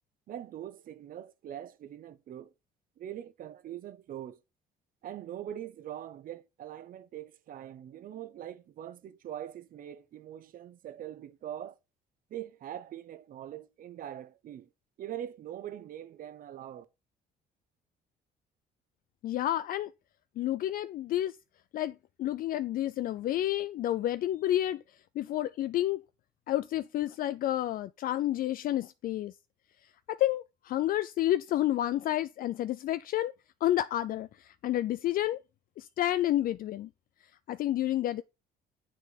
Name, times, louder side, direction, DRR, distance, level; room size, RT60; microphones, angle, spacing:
voice 1, 0.3-2.5 3.0-4.4 5.0-11.8 12.3-14.7 15.0-16.9, right 11 dB, 55° right, 0.9 m, -42 dB
voice 2, 19.2-19.9 20.4-21.4 21.7-24.8 25.2-26.0 26.5-29.3 29.8-33.3 33.6-35.4 35.8-36.9 37.5-38.2, left 13 dB, 55° left, 0.4 m, -30 dB
7.5 x 6.3 x 4.0 m
cardioid pair, 110°, 17 cm